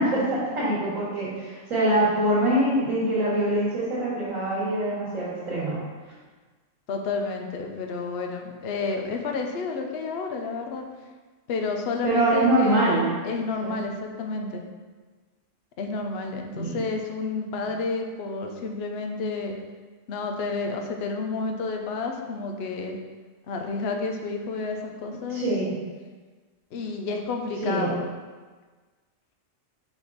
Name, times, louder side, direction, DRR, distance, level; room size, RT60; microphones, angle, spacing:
voice 1, 0.0-5.8 12.0-13.1 13.6-13.7 16.5-16.8 25.3-25.7 27.6-27.9, right 1 dB, 90° right, -11 dB, 2.2 m, -24 dB
voice 2, 6.9-10.8 11.5-14.6 15.8-19.6 20.1-23.0 23.5-25.4 26.7-28.1, left 4 dB, 60° left, 3 dB, 0.8 m, -30 dB
5.0 x 4.9 x 3.9 m, 1.4 s
omnidirectional pair, 1.3 m